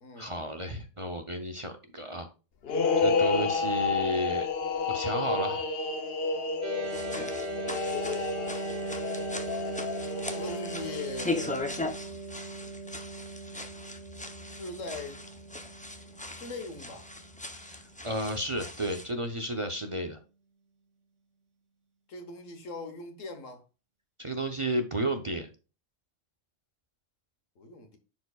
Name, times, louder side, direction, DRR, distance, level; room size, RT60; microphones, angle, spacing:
voice 1, 0.2-2.3 3.0-4.5 4.9-5.6 17.6-20.2 24.2-25.5, right 1 dB, 30° right, 0.6 m, -32 dB
sound 1, 2.6-11.2, left 4 dB, 55° left, 0.9 m, -30 dB
sound 2, 6.6-18.1, right 3 dB, 65° right, 1.4 m, -39 dB
sound 3, 6.8-19.1, left 2 dB, 10° left, 0.4 m, -39 dB
voice 2, 7.8-8.3 10.3-11.6 14.5-15.2 16.3-17.1 22.1-23.6 27.6-28.0, left 3 dB, 80° left, 1.6 m, -41 dB
10.5 x 4.7 x 2.3 m
omnidirectional pair, 1.3 m